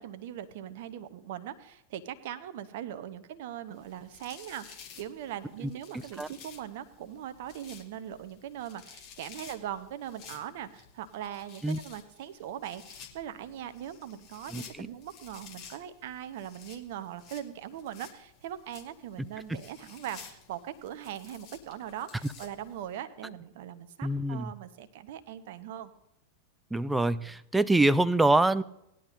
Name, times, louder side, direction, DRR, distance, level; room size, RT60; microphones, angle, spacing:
voice 1, 0.0-25.9, right 10 dB, 50° right, 12 dB, 1.0 m, -40 dB
sound 1, 3.8-22.9, left 7 dB, 40° left, 2.2 m, -53 dB
voice 2, 14.5-14.9 24.0-24.5 26.7-28.6, right 2 dB, 5° right, 16 dB, 0.5 m, -25 dB
19.0 x 11.0 x 2.6 m, 0.83 s
figure-of-eight pair, 90°, 0 cm